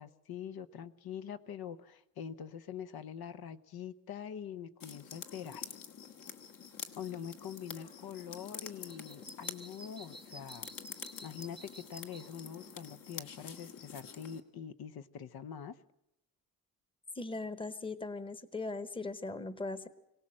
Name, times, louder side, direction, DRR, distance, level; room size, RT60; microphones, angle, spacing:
voice 1, 0.0-5.7 7.0-10.7 11.2-15.8, left 8 dB, 75° left, 11 dB, 1.0 m, -44 dB
sound 1, 4.8-14.4, left 7 dB, 60° left, 1.8 m, -48 dB
sound 2, 7.8-12.9, right 1 dB, 15° right, 0.8 m, -54 dB
voice 2, 17.1-19.9, left 3 dB, 15° left, 12 dB, 1.0 m, -39 dB
24.5 x 18.0 x 7.6 m, 0.84 s
wide cardioid pair, 165°, 37 cm